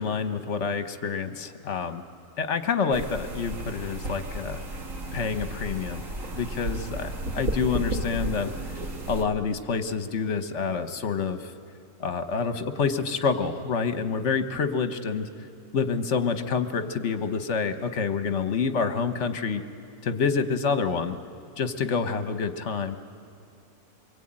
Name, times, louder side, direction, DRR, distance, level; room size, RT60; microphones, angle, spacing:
voice 1, 0.0-2.0 2.4-4.6 5.1-6.0 6.3-8.5 9.1-11.5 12.0-15.3 15.7-19.6 20.0-21.2 21.6-23.0, left 5 dB, 50° left, 8 dB, 1.3 m, -27 dB
sound 1, 2.9-9.2, right 1 dB, 55° right, 2.1 m, -33 dB
24.0 x 23.5 x 8.8 m, 2.5 s
omnidirectional pair, 1.6 m